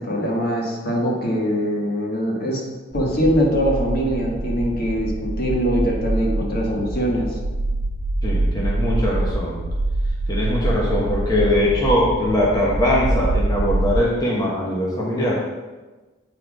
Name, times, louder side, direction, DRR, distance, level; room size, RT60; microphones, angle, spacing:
voice 1, 0.0-2.6 2.9-7.4, equal, 50° left, -2 dB, 1.6 m, -22 dB
sound 1, 2.9-14.0, right 2 dB, 35° right, 0.5 m, -25 dB
voice 2, 8.2-9.6 10.3-15.4, left 1 dB, 20° left, -5 dB, 1.1 m, -21 dB
8.4 x 4.2 x 4.9 m, 1.2 s
head